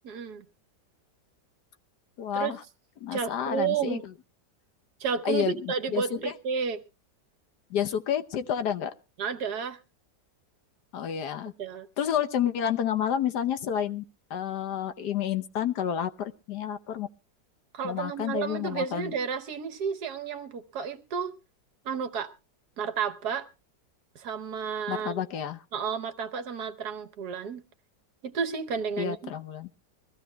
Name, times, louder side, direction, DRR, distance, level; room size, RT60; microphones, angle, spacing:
voice 1, 0.0-0.4 2.3-2.5 3.1-4.0 5.0-6.8 9.2-9.8 11.6-11.9 17.7-21.3 21.8-22.3 22.8-23.5 24.1-25.2 25.7-27.6 28.2-29.3, right 6 dB, 65° right, 1.5 m, -31 dB
voice 2, 2.2-2.6 3.0-4.0 5.2-6.3 7.7-8.9 10.9-11.5 12.0-14.0 14.3-17.1 17.8-19.1 24.9-25.6 29.0-29.7, left 9 dB, 70° left, 1.4 m, -30 dB
23.0 x 15.0 x 2.2 m
omnidirectional pair, 1.9 m